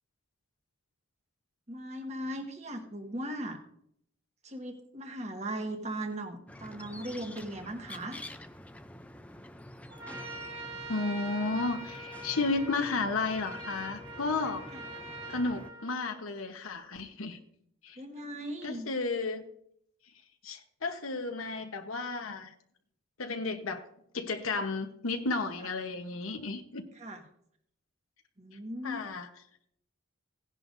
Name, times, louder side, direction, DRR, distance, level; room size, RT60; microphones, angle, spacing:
voice 1, 1.7-3.6 4.4-8.2 14.7-14.8 18.0-18.9 25.6-25.7 26.9-27.2 28.4-29.0, right 1 dB, 35° right, 1.5 m, -38 dB
sound 1, 6.5-15.7, left 1 dB, 5° left, 0.4 m, -48 dB
Trumpet, 9.9-16.4, right 2 dB, 75° right, 4.7 m, -44 dB
voice 2, 10.9-14.6 15.3-17.4 17.8-18.0 18.6-19.4 20.4-22.5 23.2-23.8 24.1-26.8 28.8-29.3, left 3 dB, 90° left, 1.0 m, -33 dB
17.0 x 10.5 x 2.6 m
head